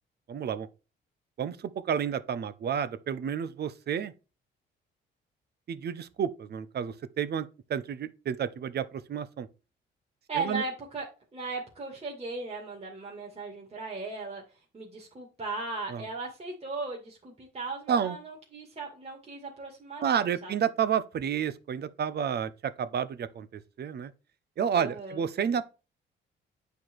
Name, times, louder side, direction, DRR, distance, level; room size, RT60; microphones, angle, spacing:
voice 1, 0.3-0.7 1.4-4.1 5.7-9.5 10.3-10.6 15.9-16.0 17.9-18.2 20.0-24.1 24.6-25.6, right 8 dB, 55° right, 0.9 m, -30 dB
voice 2, 10.3-11.1 11.3-20.5 24.7-25.2, right 3 dB, 30° right, 2.3 m, -37 dB
8.9 x 4.7 x 4.6 m
cardioid pair, 90°, 20 cm